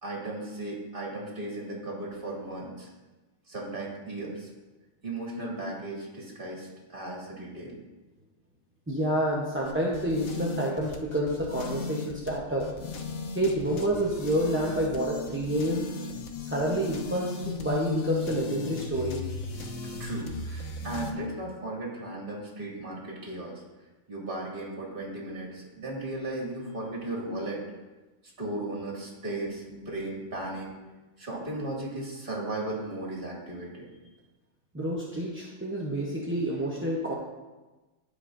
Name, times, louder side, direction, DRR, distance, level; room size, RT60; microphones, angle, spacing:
voice 1, 0.0-2.9 3.5-4.5 5.0-7.8 19.5-23.6 24.1-27.6 28.4-30.7 31.2-33.9, right 2 dB, 40° right, -3 dB, 2.2 m, -36 dB
voice 2, 8.9-12.7 13.3-15.9 16.4-19.2 34.7-37.1, right 1 dB, 15° right, -4 dB, 0.6 m, -28 dB
sound 1, 9.6-21.1, left 4 dB, 80° left, 1.2 m, -36 dB
14.5 x 5.0 x 2.5 m, 1.2 s
omnidirectional pair, 1.5 m